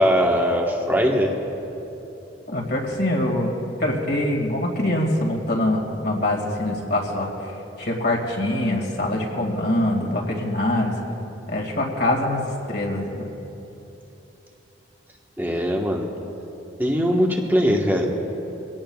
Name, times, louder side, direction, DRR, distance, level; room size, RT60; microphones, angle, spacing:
voice 1, 0.0-1.4 15.4-16.1 16.8-18.1, equal, 10° right, 0 dB, 1.3 m, -20 dB
voice 2, 2.5-7.3 7.8-10.9 11.5-13.3, left 1 dB, 50° left, 0 dB, 2.2 m, -24 dB
24.5 x 17.5 x 2.4 m, 3.0 s
head